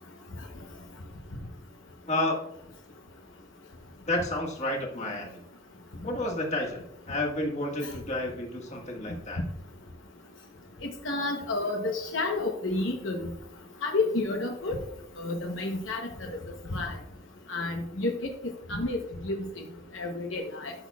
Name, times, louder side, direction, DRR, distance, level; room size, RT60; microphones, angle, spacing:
voice 1, 4.1-5.4 6.0-9.4, left 1 dB, 35° left, 0 dB, 1.7 m, -31 dB
voice 2, 11.0-13.2 13.8-14.8 15.2-16.0 16.7-16.9 17.5-18.1 18.7-19.0 19.2-19.4 19.9-20.7, left 2 dB, 70° left, 2 dB, 0.9 m, -30 dB
12.5 x 6.1 x 2.4 m, 0.77 s
head